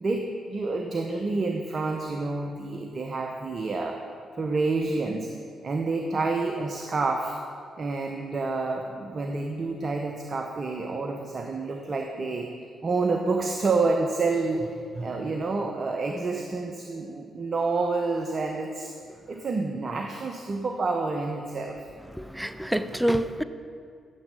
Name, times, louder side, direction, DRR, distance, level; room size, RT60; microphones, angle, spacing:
voice 1, 0.0-4.0 4.4-5.3 5.6-7.3 7.8-12.5 12.8-18.9 19.3-21.8, right 3 dB, 45° right, 4 dB, 0.8 m, -28 dB
voice 2, 22.1-23.4, right 1 dB, 5° right, 12 dB, 0.5 m, -27 dB
14.0 x 7.2 x 3.5 m, 2.3 s
hypercardioid pair, 45°, 0 cm